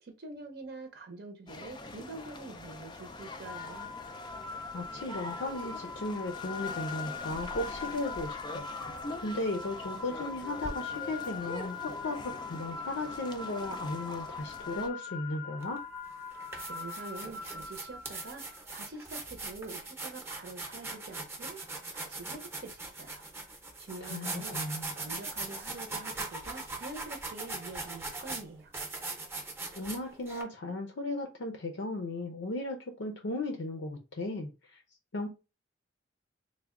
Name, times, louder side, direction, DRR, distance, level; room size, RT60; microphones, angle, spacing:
voice 1, 0.0-3.9 16.5-23.2 23.8-28.7, right 3 dB, 55° right, 0.7 m, -46 dB
sound 1, 1.5-14.9, left 2 dB, 25° left, 0.4 m, -44 dB
sound 2, 3.4-18.6, left 5 dB, 90° right, 0.9 m, -42 dB
voice 2, 4.7-8.7 9.2-11.8 12.0-15.8 24.0-24.9 29.7-34.8 35.1-35.3, left 2 dB, 85° left, 0.6 m, -36 dB
sound 3, 15.6-15.8 16.3-30.4, right 3 dB, 15° right, 0.7 m, -40 dB
3.4 x 2.1 x 3.6 m
head